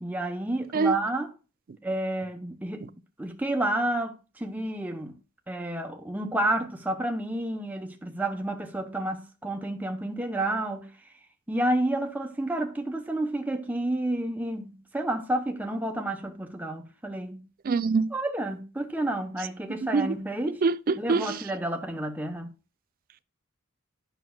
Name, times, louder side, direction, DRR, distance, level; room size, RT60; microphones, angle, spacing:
voice 1, 0.0-1.3 1.8-2.9 3.2-5.2 5.5-10.9 11.5-17.5 18.1-20.6 21.0-22.5, right 1 dB, 10° right, 0.8 m, -30 dB
voice 2, 17.7-18.1 19.9-20.1 20.6-21.4, right 4 dB, 45° right, 0.4 m, -24 dB
9.2 x 6.0 x 2.2 m
head